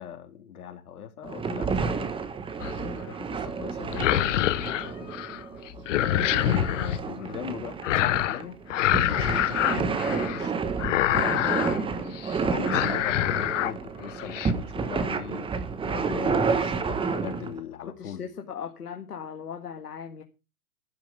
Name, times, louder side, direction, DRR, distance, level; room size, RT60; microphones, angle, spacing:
voice 1, 0.0-2.1 3.1-5.1 5.9-8.5 9.1-10.5 11.4-15.5 15.8-18.2, left 9 dB, 70° left, 5 dB, 3.9 m, -39 dB
sound 1, 1.2-17.6, right 5 dB, 10° right, 1.3 m, -30 dB
sound 2, 2.6-3.0 3.8-5.4 5.7-7.0 7.8-8.4 8.7-10.5 10.8-11.8 12.1-12.4 12.6-13.7 14.1-14.5, left 13 dB, 55° left, 1.4 m, -26 dB
voice 2, 17.8-20.2, left 7 dB, 85° left, 5 dB, 2.1 m, -39 dB
12.5 x 10.0 x 5.6 m, 0.30 s
hypercardioid pair, 130°, 45 cm